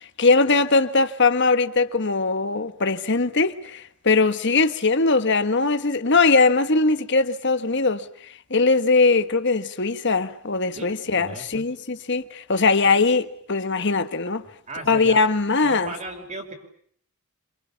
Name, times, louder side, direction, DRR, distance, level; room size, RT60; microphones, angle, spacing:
voice 1, 0.0-14.4 14.9-15.9, left 3 dB, 50° left, 1.5 m, -21 dB
voice 2, 10.7-11.6 14.7-15.3 15.6-16.5, right 2 dB, 30° right, 5.3 m, -37 dB
28.0 x 27.0 x 7.1 m
head